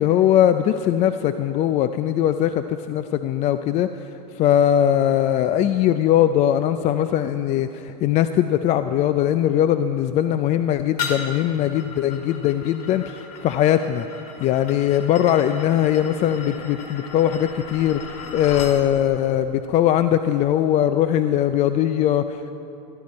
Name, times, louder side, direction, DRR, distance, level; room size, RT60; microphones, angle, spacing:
voice 1, 0.0-3.9 4.4-14.1 14.4-22.5, left 11 dB, 35° left, 10 dB, 0.5 m, -20 dB
sound 1, 11.0-18.8, left 5 dB, 70° left, 2.3 m, -36 dB
18.0 x 14.0 x 4.3 m, 2.9 s
hypercardioid pair, 115°, 21 cm